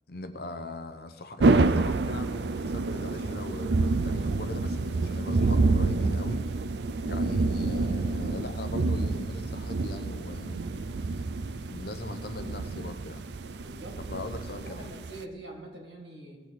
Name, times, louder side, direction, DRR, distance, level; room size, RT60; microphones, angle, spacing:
voice 1, 0.1-6.6 7.1-10.7 11.0-11.3 11.6-13.2 14.1-14.9, left 2 dB, 60° left, 8 dB, 0.8 m, -40 dB
sound 1, 1.4-15.2, right 3 dB, 70° right, 0.4 m, -28 dB
voice 2, 13.6-16.4, right 2 dB, 85° right, 1 dB, 2.4 m, -45 dB
17.0 x 7.2 x 4.2 m, 1.5 s
head